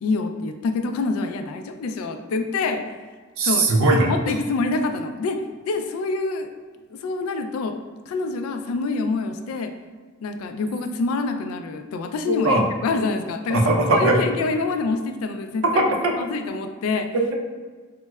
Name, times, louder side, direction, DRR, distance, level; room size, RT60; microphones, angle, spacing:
voice 1, 0.0-2.8 3.4-3.7 4.1-6.5 6.9-7.8 8.1-9.7 10.2-13.6 13.9-15.8 16.2-17.1, left 3 dB, 80° left, 8 dB, 0.3 m, -26 dB
voice 2, 3.4-4.1 12.3-12.6 13.5-14.2 15.7-16.1 17.1-17.3, right 2 dB, 70° right, 1 dB, 0.5 m, -19 dB
4.4 x 2.0 x 2.2 m, 1.4 s
head